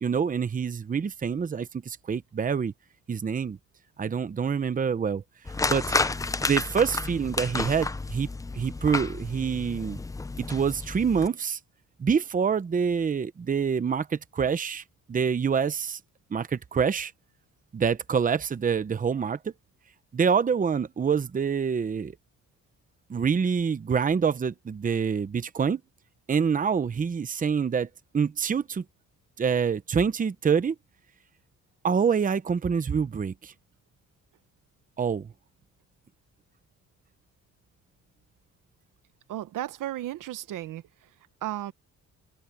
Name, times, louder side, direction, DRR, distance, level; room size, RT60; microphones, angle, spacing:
voice 1, 0.0-2.7 3.1-3.6 4.0-5.2 5.7-5.9 6.4-8.3 8.5-10.0 10.4-11.6 12.0-14.8 15.1-16.0 16.3-17.1 17.7-19.5 20.1-22.2 23.1-25.8 26.3-27.9 28.1-28.8 29.4-30.7 31.8-33.5 35.0-35.3, right 6 dB, 25° right, 0.8 m, -26 dB
sound 1, 5.4-11.3, left 3 dB, 10° left, 0.4 m, -31 dB
voice 2, 39.3-40.8 41.4-41.7, right 13 dB, 80° right, 1.1 m, -34 dB
cardioid pair, 130°, 31 cm